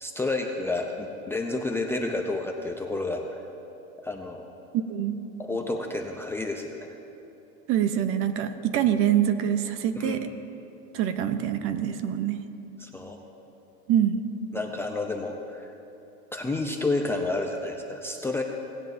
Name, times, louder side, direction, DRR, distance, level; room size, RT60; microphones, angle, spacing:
voice 1, 0.0-3.4 4.0-4.5 5.4-6.9 10.0-10.3 12.8-13.2 14.5-15.7 16.3-18.4, left 2 dB, 5° left, 2 dB, 0.4 m, -30 dB
voice 2, 4.7-5.2 7.7-10.3 10.9-12.4 13.9-14.2, right 10 dB, 40° right, 10 dB, 0.7 m, -25 dB
18.5 x 10.5 x 2.6 m, 2.9 s
supercardioid pair, 135°, 34 cm